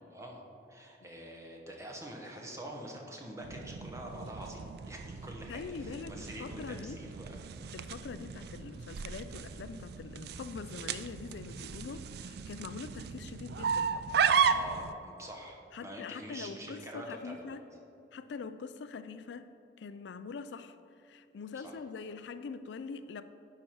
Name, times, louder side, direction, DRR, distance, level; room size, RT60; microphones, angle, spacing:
voice 1, 0.1-0.4 0.7-7.5 11.8-12.0 14.5-17.5 21.5-21.8, right 1 dB, 15° right, 0 dB, 1.1 m, -45 dB
sound 1, 3.4-14.9, right 6 dB, 55° right, 0.3 m, -35 dB
voice 2, 5.5-7.0 7.7-13.9 15.7-17.6 18.1-19.5 19.8-23.2, left 5 dB, 65° left, 11 dB, 0.3 m, -43 dB
10.0 x 5.7 x 4.6 m, 2.8 s
head